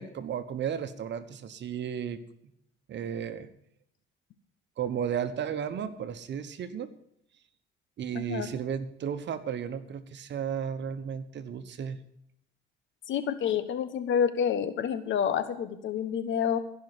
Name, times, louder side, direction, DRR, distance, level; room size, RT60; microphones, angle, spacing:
voice 1, 0.0-2.2 2.9-3.5 4.8-6.9 8.0-12.0, right 8 dB, 65° right, 11 dB, 1.2 m, -34 dB
voice 2, 8.1-8.5 13.1-16.6, left 8 dB, 70° left, 11 dB, 1.3 m, -28 dB
16.0 x 5.7 x 9.6 m, 0.73 s
cardioid pair, 90°, 20 cm